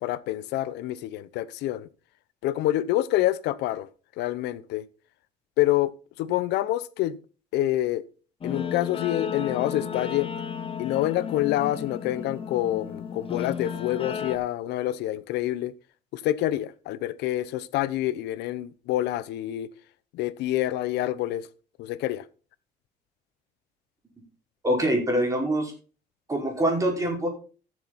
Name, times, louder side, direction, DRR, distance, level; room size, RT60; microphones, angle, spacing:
voice 1, 0.0-1.9 2.4-3.9 4.2-4.8 5.6-5.9 6.2-7.2 7.5-8.0 8.4-10.3 10.8-15.7 16.1-19.7 20.1-21.5 21.8-22.2, left 14 dB, 85° left, 0.8 m, -27 dB
Guitar, 8.4-14.4, left 7 dB, 35° left, 1.1 m, -33 dB
voice 2, 24.6-25.7 26.3-27.3, right 1 dB, 20° right, 5.2 m, -24 dB
14.0 x 7.5 x 4.1 m
cardioid pair, 110°, 17 cm